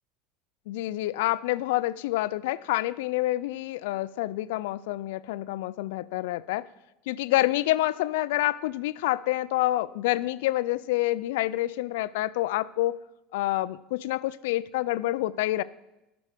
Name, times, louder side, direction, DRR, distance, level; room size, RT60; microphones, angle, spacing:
voice 1, 0.7-6.7 7.1-13.0 13.3-15.6, left 16 dB, 85° left, 18 dB, 0.3 m, -27 dB
13.0 x 6.1 x 5.1 m, 0.95 s
cardioid pair, 155°, 0 cm